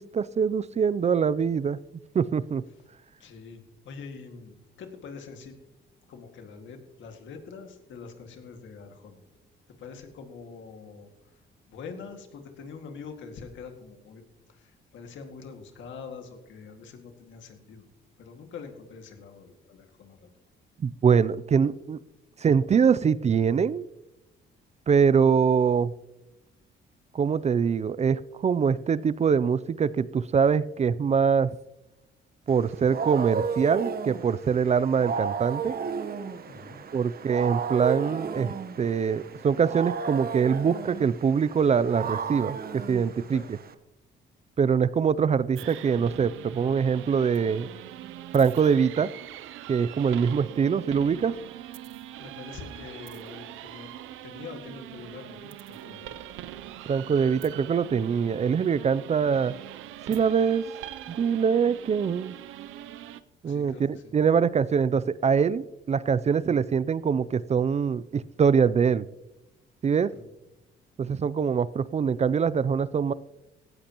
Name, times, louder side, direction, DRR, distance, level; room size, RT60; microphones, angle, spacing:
voice 1, 0.0-1.8 2.1-2.6 20.8-22.0 22.4-23.8 24.9-25.9 27.1-31.6 32.5-35.8 36.9-43.6 44.6-47.7 48.3-49.1 49.7-51.3 56.9-59.5 60.1-60.6 61.1-62.4 63.4-69.1 69.8-70.1 71.0-73.1, right 6 dB, 35° right, 18 dB, 0.4 m, -24 dB
voice 2, 3.2-5.6 6.1-9.2 9.8-11.1 11.7-14.2 14.5-17.8 18.2-20.3 36.5-36.8 43.3-43.5 50.1-50.2 52.2-53.9 54.2-56.2 63.4-64.2 70.1-70.3, left 5 dB, 75° left, 5 dB, 2.1 m, -44 dB
Wild animals, 32.5-43.7, right 6 dB, 50° right, 1.1 m, -34 dB
sound 1, 45.6-63.2, right 13 dB, 90° right, 0.6 m, -42 dB
17.0 x 13.0 x 3.0 m, 0.95 s
cardioid pair, 90°, 20 cm